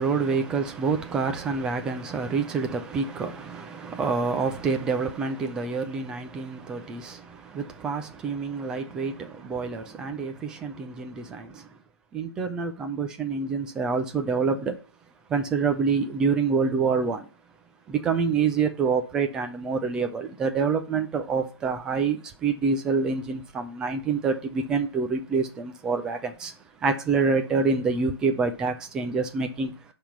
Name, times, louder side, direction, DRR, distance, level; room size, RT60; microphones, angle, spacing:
voice 1, 0.0-11.7 12.1-14.8 15.3-17.3 17.9-26.5 26.8-29.7, right 5 dB, 5° right, 0.4 m, -27 dB
10.0 x 3.6 x 5.8 m
figure-of-eight pair, 150°, 14 cm